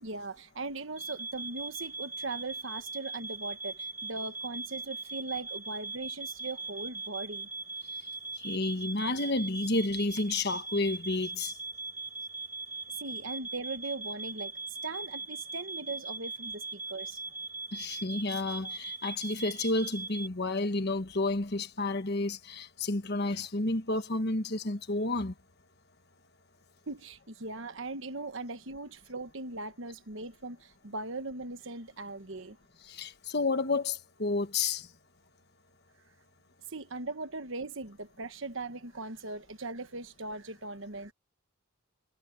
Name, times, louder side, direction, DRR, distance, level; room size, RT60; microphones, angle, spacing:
voice 1, 0.0-7.5 13.0-14.5 14.8-17.2 26.9-32.6 36.7-41.1, right 3 dB, 60° right, 1.3 m, -39 dB
sound 1, 1.0-20.3, right 3 dB, 10° right, 0.5 m, -40 dB
voice 2, 8.4-11.6 17.7-25.3 32.8-34.9, left 2 dB, 50° left, 1.4 m, -31 dB
head